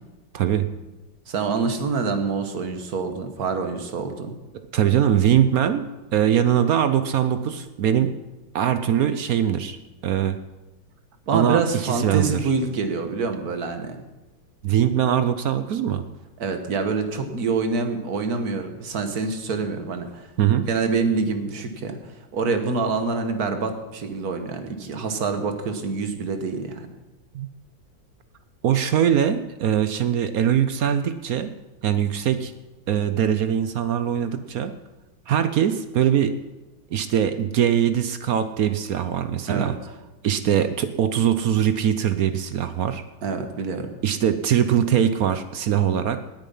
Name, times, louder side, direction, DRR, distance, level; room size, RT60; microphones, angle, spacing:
voice 1, 0.3-0.7 4.7-5.8 6.1-8.1 8.5-9.8 10.0-10.4 11.3-12.4 14.6-16.1 20.4-20.7 27.3-27.5 28.6-31.5 31.8-32.5 32.9-34.7 35.3-36.3 36.9-39.7 40.2-43.0 44.0-46.2, right 9 dB, 70° right, 10 dB, 0.8 m, -22 dB
voice 2, 1.3-4.4 11.3-14.0 16.4-20.3 20.6-26.9 39.5-39.7 43.2-43.9, right 4 dB, 50° right, 7 dB, 1.7 m, -26 dB
18.5 x 9.1 x 5.5 m, 1.1 s
omnidirectional pair, 2.2 m